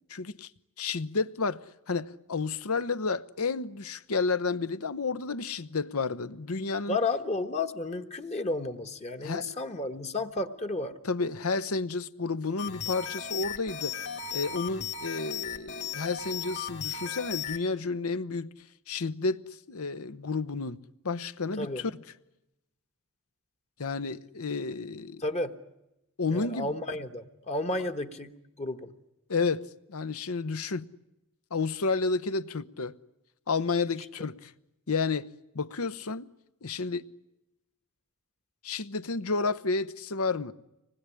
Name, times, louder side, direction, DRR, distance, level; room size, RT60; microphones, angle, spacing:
voice 1, 0.1-0.5 0.8-7.0 9.2-9.5 11.0-14.0 14.3-18.5 18.9-19.4 19.7-20.8 21.0-21.9 23.8-25.2 26.2-26.7 29.3-30.9 31.5-32.9 33.5-34.5 34.9-35.3 35.5-36.3 36.6-37.1 38.6-40.5, left 4 dB, 70° left, 0.9 m, -31 dB
voice 2, 6.9-11.0 21.6-21.8 25.2-25.5 26.3-28.3 28.6-28.9, left 2 dB, 30° left, 1.3 m, -32 dB
sound 1, 12.6-17.6, left 7 dB, 50° left, 2.9 m, -36 dB
25.5 x 20.0 x 9.9 m
head